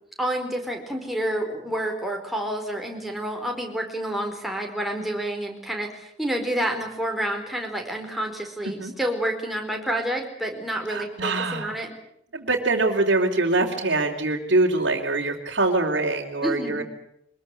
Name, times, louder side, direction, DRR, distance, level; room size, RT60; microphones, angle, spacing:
voice 1, 0.2-11.9 16.4-16.8, right 1 dB, ahead, 2 dB, 4.5 m, -29 dB
voice 2, 10.9-11.7 12.3-16.8, right 2 dB, 60° right, -5 dB, 3.2 m, -24 dB
24.0 x 21.5 x 8.4 m, 0.78 s
head